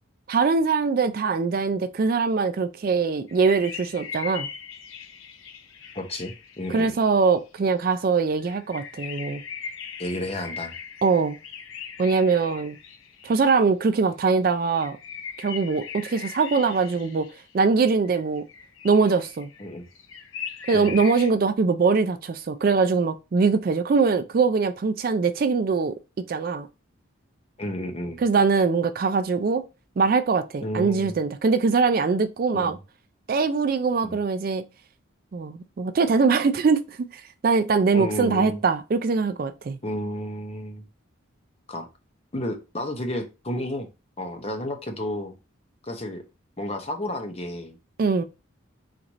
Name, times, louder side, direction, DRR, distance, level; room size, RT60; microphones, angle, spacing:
voice 1, 0.3-4.5 6.7-9.4 11.0-11.4 12.0-12.8 13.2-15.0 15.4-17.3 17.5-18.4 18.8-19.5 20.7-25.9 26.3-26.7 28.2-29.6 30.0-32.8 33.3-34.6 35.3-37.0 37.4-39.8 48.0-48.2, right 4 dB, 45° right, 0.3 m, -22 dB
sound 1, 3.3-7.6 8.4-13.5 14.8-17.5 18.0-21.3, left 7 dB, 75° left, 0.7 m, -40 dB
voice 2, 5.9-6.9 10.0-10.7 19.6-19.9 20.7-21.0 27.6-28.2 30.6-31.2 32.5-32.8 34.0-34.2 37.9-38.6 39.8-40.9 41.7-41.9 42.3-43.9 44.2-45.4 45.8-46.2 46.6-47.8, left 1 dB, 30° left, 0.7 m, -31 dB
4.5 x 2.5 x 4.0 m
head